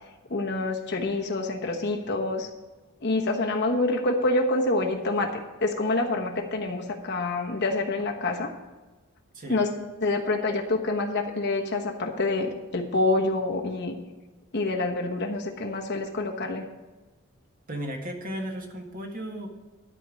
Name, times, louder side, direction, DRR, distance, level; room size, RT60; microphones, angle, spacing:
voice 1, 0.3-2.5 3.0-8.5 9.5-9.7 10.0-14.0 14.5-16.6, left 2 dB, 50° left, 2 dB, 1.2 m, -27 dB
voice 2, 17.7-19.5, equal, 40° right, 2 dB, 1.6 m, -35 dB
12.5 x 4.5 x 8.3 m, 1.2 s
head